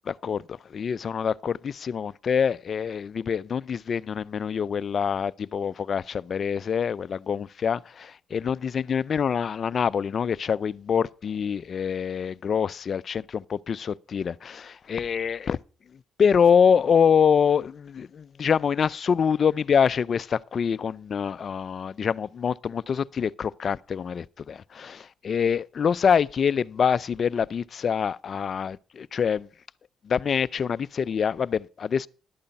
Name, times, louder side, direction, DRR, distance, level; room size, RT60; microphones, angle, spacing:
voice 1, 0.1-15.6 16.2-29.5 30.0-32.1, left 7 dB, 50° left, 0.4 m, -25 dB
12.0 x 8.7 x 5.4 m
cardioid pair, 90°, 0 cm